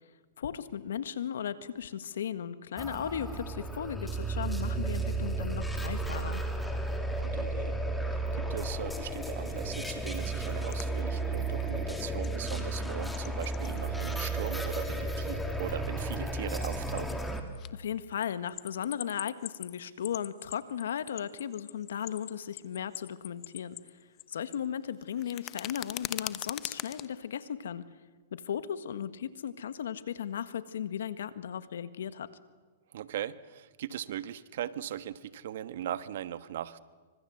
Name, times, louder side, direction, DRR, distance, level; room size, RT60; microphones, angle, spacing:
voice 1, 0.4-6.4 17.7-23.8 24.3-27.8 28.3-32.3, left 9 dB, 80° left, 13 dB, 1.6 m, -36 dB
sound 1, 2.8-17.4, right 2 dB, 5° left, 3.0 m, -33 dB
voice 2, 7.2-7.8 8.0-17.2 32.9-36.8, right 11 dB, 70° right, 14 dB, 1.4 m, -39 dB
sound 2, 10.4-12.3 12.6-13.8 14.1-15.8 16.1-17.7 18.0-24.2 24.5-27.1, left 15 dB, 35° left, 1.1 m, -42 dB
26.0 x 25.0 x 8.0 m, 1.4 s
hypercardioid pair, 135°, 0 cm